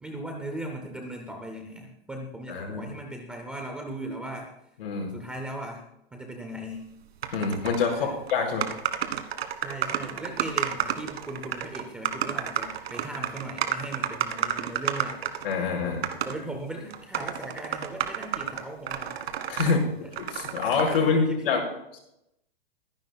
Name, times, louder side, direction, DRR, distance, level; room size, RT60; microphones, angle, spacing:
voice 1, 0.0-4.5 5.1-5.8 6.1-6.9 7.9-8.5 9.6-15.2 16.1-19.2 20.8-21.7, right 1 dB, 5° right, 2 dB, 0.4 m, -38 dB
voice 2, 2.5-2.8 4.8-5.1 7.3-8.6 15.4-16.1 19.5-21.7 21.9-22.0, left 5 dB, 70° left, 1 dB, 5.1 m, -26 dB
sound 1, 7.2-8.0 8.3-8.4 8.6-15.6 16.0-16.4 16.9-19.8 20.1-21.0, right 9 dB, 85° right, 1.5 m, -31 dB
22.5 x 10.5 x 2.3 m, 0.82 s
supercardioid pair, 175°, 30 cm